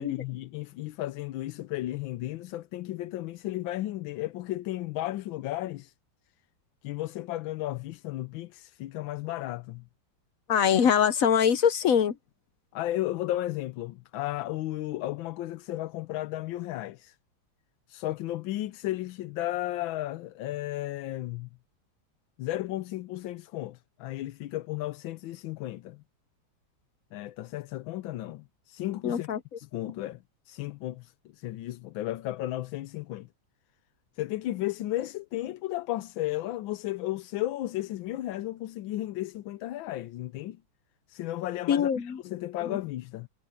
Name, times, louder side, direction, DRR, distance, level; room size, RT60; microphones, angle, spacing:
voice 1, 0.0-5.9 6.8-9.8 12.7-17.1 17.9-21.5 22.4-26.0 27.1-29.3 29.6-33.3 34.2-40.6 41.1-43.3, left 15 dB, 80° left, 1.4 m, -34 dB
voice 2, 10.5-12.1 29.0-29.4 41.7-42.2 42.7-42.8, left 8 dB, 65° left, 0.9 m, -23 dB
omnidirectional pair, 2.1 m